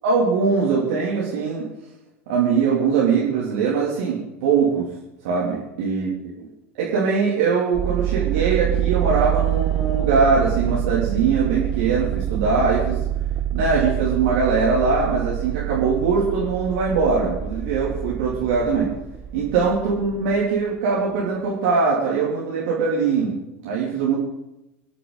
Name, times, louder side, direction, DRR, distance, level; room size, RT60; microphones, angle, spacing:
voice 1, 0.0-1.7 2.3-4.8 5.2-6.3 6.8-13.0 13.5-18.9 19.3-24.1, right 5 dB, 55° right, -5 dB, 3.1 m, -21 dB
sound 1, 7.7-20.4, right 13 dB, 35° right, 0.7 m, -26 dB
25.0 x 10.0 x 4.1 m, 0.93 s
figure-of-eight pair, 80°, 7 cm